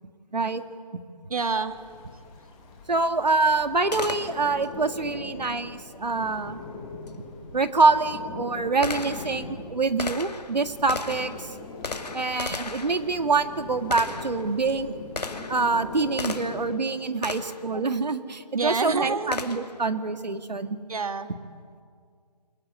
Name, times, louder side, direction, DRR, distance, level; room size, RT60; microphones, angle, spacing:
voice 1, 0.3-0.6 2.9-6.6 7.2-7.3 7.5-11.5 12.1-15.0 15.5-20.8, right 3 dB, 85° right, 9 dB, 2.1 m, -25 dB
voice 2, 1.3-1.7 18.5-19.3 20.9-21.3, right 4 dB, 60° right, 9 dB, 2.0 m, -27 dB
sound 1, 1.7-16.7, left 3 dB, 10° left, 1.7 m, -41 dB
Gunshot gunfire, 3.9-4.7 7.1-7.2 7.9-16.7 17.2-17.7 19.3-19.8, left 3 dB, 75° left, 2.4 m, -36 dB
26.0 x 22.5 x 9.6 m, 2.2 s
hypercardioid pair, 170°, 21 cm